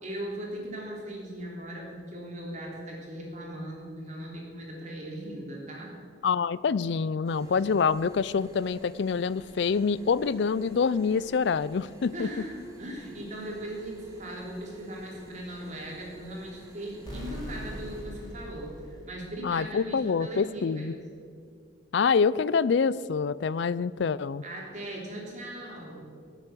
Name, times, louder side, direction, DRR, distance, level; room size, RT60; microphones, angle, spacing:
voice 1, 0.0-5.9 12.1-21.0 24.4-26.1, right 1 dB, 40° right, -3 dB, 3.4 m, -39 dB
voice 2, 6.2-12.3 19.4-20.9 21.9-24.4, left 5 dB, 65° left, 19 dB, 0.4 m, -26 dB
sound 1, 7.2-18.0, right 1 dB, 20° right, 2.0 m, -51 dB
sound 2, 17.1-19.8, equal, 20° left, 3.4 m, -41 dB
16.5 x 8.2 x 6.9 m, 2.2 s
head